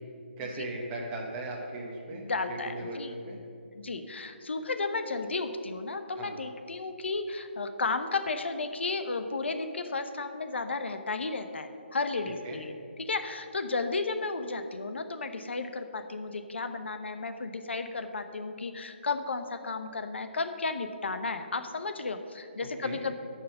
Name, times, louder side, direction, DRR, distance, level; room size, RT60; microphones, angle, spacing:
voice 1, 0.4-3.4 6.2-6.3 12.4-12.6 22.8-23.0, right 2 dB, 10° right, -2 dB, 0.9 m, -38 dB
voice 2, 2.1-3.1 3.7-23.1, left 3 dB, 75° left, 8 dB, 0.9 m, -33 dB
12.5 x 4.8 x 6.8 m, 2.5 s
hypercardioid pair, 175°, 6 cm